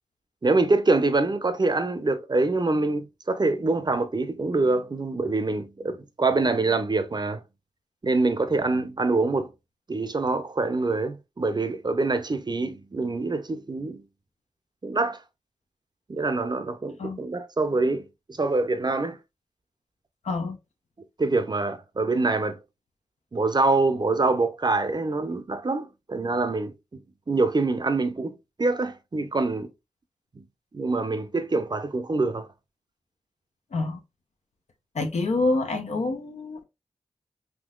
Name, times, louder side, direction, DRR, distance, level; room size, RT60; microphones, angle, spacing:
voice 1, 0.4-7.4 8.0-9.5 9.9-14.0 14.8-15.2 16.1-18.1 18.4-19.2 21.2-22.6 23.3-27.0 27.3-29.7 30.4-30.5 30.7-32.5, right 3 dB, 40° right, 0.5 m, -25 dB
voice 2, 20.2-20.6 33.7-34.0 34.9-36.6, left 2 dB, 75° left, 0.7 m, -27 dB
3.7 x 2.7 x 2.3 m
cardioid pair, 40°, 12 cm